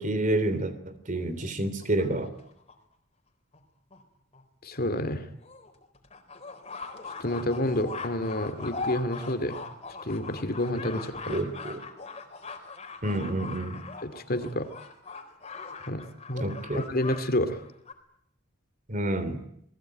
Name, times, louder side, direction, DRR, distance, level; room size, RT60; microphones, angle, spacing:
voice 1, 0.0-2.3 11.3-11.8 13.0-13.9 16.4-16.9 18.9-19.4, right 1 dB, 40° right, 12 dB, 3.1 m, -29 dB
sound 1, 1.1-2.7 3.5-3.6 3.9-4.0 4.3-4.4 4.8-4.9 5.4-17.2 17.5-17.9, left 4 dB, 30° left, 4.1 m, -41 dB
voice 2, 4.6-5.3 7.2-9.6 10.0-11.4 14.0-14.7 15.9-16.0 16.3-16.5 16.9-17.6, left 1 dB, 50° left, 9 dB, 2.5 m, -29 dB
28.5 x 20.5 x 9.1 m, 0.74 s
head